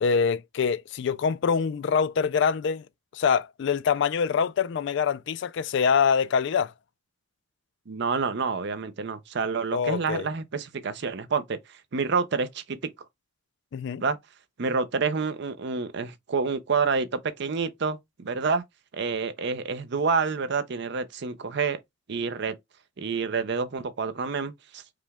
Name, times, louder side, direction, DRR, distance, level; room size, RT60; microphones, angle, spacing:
voice 1, 0.0-2.8 3.1-6.7 9.7-10.3 13.7-14.0, left 6 dB, 65° left, 0.4 m, -24 dB
voice 2, 7.9-11.6 11.9-12.8 14.0-14.2 14.6-18.6 18.9-21.8 22.1-22.5 23.0-24.8, right 5 dB, 60° right, 0.6 m, -28 dB
4.9 x 2.3 x 3.4 m
head